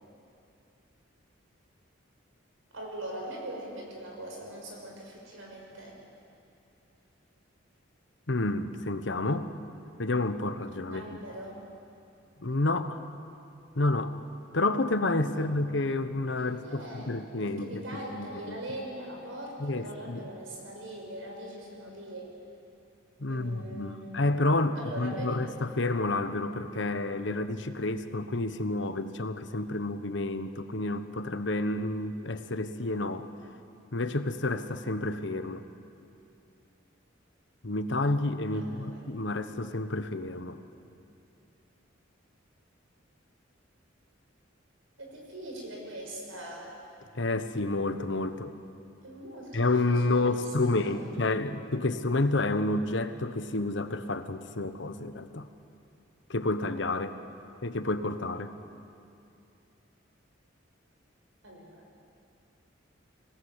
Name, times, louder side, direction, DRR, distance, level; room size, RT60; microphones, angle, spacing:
voice 1, 2.7-5.9 10.8-11.6 15.3-15.4 16.6-22.3 23.3-24.3 24.7-25.5 38.5-39.0 45.0-46.7 49.0-51.1 61.4-61.8, right 1 dB, 90° right, -1 dB, 6.4 m, -42 dB
voice 2, 8.3-9.5 10.0-11.0 12.4-13.0 13.8-14.2 14.5-17.8 18.1-18.6 19.6-20.3 23.2-33.3 33.9-35.6 37.6-40.6 47.1-48.5 49.5-55.5 56.3-57.2 57.6-58.5, left 2 dB, 65° left, 10 dB, 1.1 m, -29 dB
26.5 x 18.0 x 8.1 m, 2.6 s
head